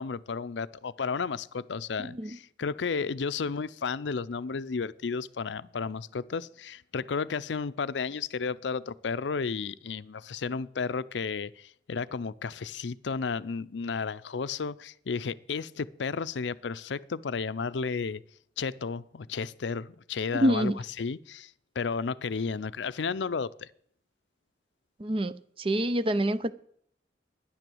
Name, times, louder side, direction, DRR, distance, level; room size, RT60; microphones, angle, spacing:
voice 1, 0.0-18.2 18.6-20.7 21.0-23.7, left 5 dB, 85° left, 0.5 m, -33 dB
voice 2, 2.0-2.4 20.3-20.8 25.0-26.5, right 1 dB, 30° right, 0.6 m, -27 dB
12.0 x 10.5 x 7.8 m
head